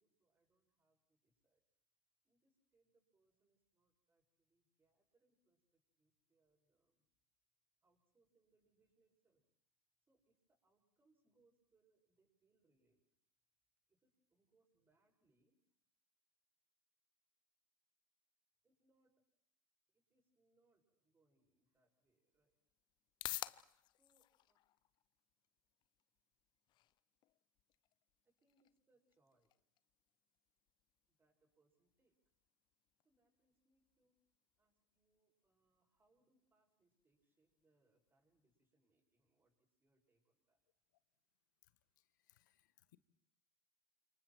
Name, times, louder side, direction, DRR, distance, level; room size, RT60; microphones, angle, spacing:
voice 1, 0.0-1.6 2.2-7.1 7.8-9.4 10.1-13.1 13.9-15.6 18.6-19.2 19.9-22.6 23.9-24.6 28.2-29.5 31.1-32.2 33.0-34.2 34.6-40.6, right 2 dB, 20° right, 7.7 m, -81 dB
sound 1, 21.7-38.7, left 15 dB, 45° left, 0.8 m, -56 dB
voice 2, 42.0-43.0, left 17 dB, 70° left, 1.5 m, -73 dB
29.5 x 27.5 x 4.7 m
hypercardioid pair, 85°, 10 cm